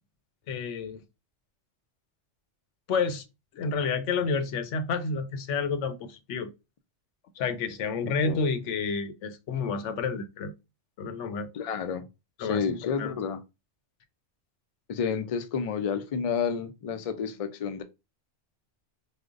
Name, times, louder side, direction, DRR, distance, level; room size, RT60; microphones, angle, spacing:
voice 1, 0.5-1.0 2.9-3.2 3.5-6.5 7.4-10.5 11.0-11.5 12.4-13.1, left 5 dB, 85° left, 0.9 m, -30 dB
voice 2, 8.0-8.4 11.5-12.1 12.4-13.4 14.9-17.8, left 6 dB, 70° left, 0.3 m, -30 dB
4.8 x 2.1 x 2.4 m
omnidirectional pair, 1.2 m